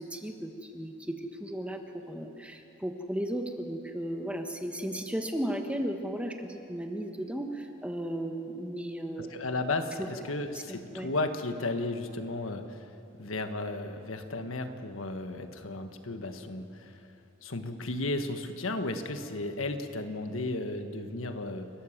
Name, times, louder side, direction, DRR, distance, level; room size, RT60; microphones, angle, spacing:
voice 1, 0.0-9.4 10.0-10.1 10.7-11.1, right 1 dB, 5° right, 4 dB, 1.3 m, -35 dB
voice 2, 9.2-12.9 13.2-17.0 17.4-21.7, left 2 dB, 80° left, 7 dB, 1.5 m, -34 dB
29.5 x 13.0 x 7.4 m, 2.8 s
head